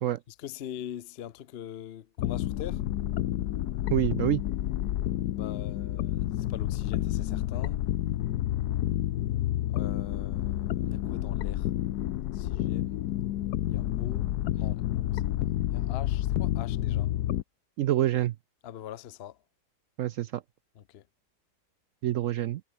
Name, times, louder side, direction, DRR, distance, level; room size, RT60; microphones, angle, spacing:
voice 1, 0.3-2.8 5.3-7.8 9.7-11.7 12.3-13.0 13.7-17.1 18.6-19.4 20.7-21.0, left 10 dB, 55° left, 0.7 m, -43 dB
sound 1, 2.2-17.4, left 13 dB, 75° left, 1.2 m, -29 dB
voice 2, 3.9-4.4 17.8-18.3 20.0-20.4 22.0-22.6, right 13 dB, 70° right, 0.7 m, -26 dB
omnidirectional pair, 1.8 m